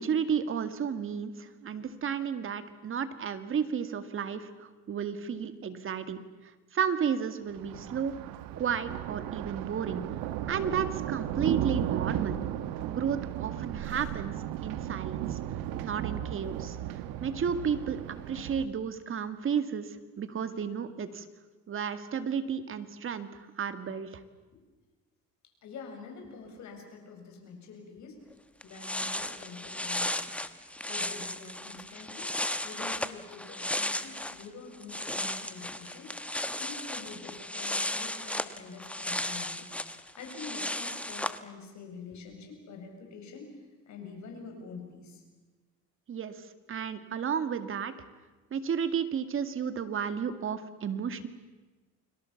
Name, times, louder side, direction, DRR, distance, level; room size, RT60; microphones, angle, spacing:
voice 1, 0.0-8.1 8.6-10.0 10.5-12.4 12.9-14.3 14.6-15.4 15.8-16.8 17.2-21.3 21.7-24.2 46.1-47.9 48.5-51.3, right 7 dB, 40° right, 10 dB, 2.1 m, -32 dB
Thunder, 7.5-18.7, right 12 dB, 90° right, 1.4 m, -35 dB
voice 2, 25.6-28.2 28.6-30.4 30.9-32.3 32.6-36.1 36.6-39.8 40.1-43.5 43.8-45.2, left 4 dB, 55° left, 3 dB, 7.8 m, -46 dB
sound 1, 28.3-28.4 28.6-34.5 34.7-41.4, left 1 dB, 5° left, 1.1 m, -35 dB
30.0 x 22.5 x 7.2 m, 1.2 s
cardioid pair, 135°, 33 cm